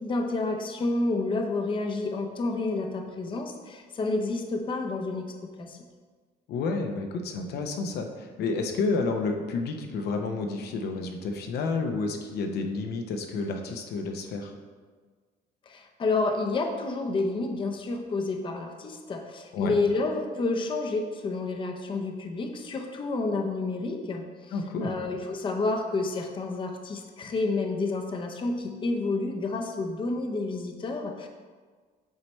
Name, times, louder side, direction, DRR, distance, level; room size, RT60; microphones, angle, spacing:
voice 1, 0.0-5.3 5.6-5.8 15.7-24.5 24.8-31.3, left 3 dB, 30° left, 4 dB, 0.6 m, -29 dB
voice 2, 6.5-14.5 19.5-19.8 24.5-25.0, left 3 dB, 70° left, 4 dB, 0.7 m, -30 dB
7.7 x 3.2 x 4.2 m, 1.5 s
cardioid pair, 110°, 17 cm